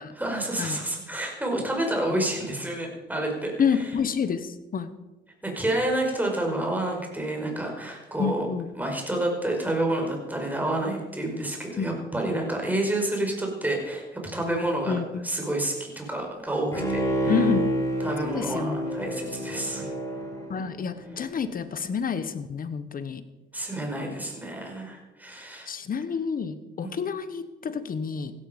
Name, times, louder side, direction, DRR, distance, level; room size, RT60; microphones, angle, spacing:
voice 1, 0.2-3.9 5.4-8.5 8.7-15.0 15.2-17.3 18.0-19.9 23.5-25.7 26.8-27.0, right 1 dB, 10° right, 1 dB, 5.1 m, -29 dB
voice 2, 3.6-4.9 8.2-8.7 11.8-11.9 14.9-15.0 17.3-17.7 18.2-18.8 20.5-23.2 25.7-28.3, left 6 dB, 45° left, 13 dB, 1.3 m, -28 dB
Bowed string instrument, 16.7-21.3 21.7-21.8, right 1 dB, 15° left, 4.3 m, -29 dB
16.0 x 13.0 x 5.2 m, 1.1 s
cardioid pair, 90°, 20 cm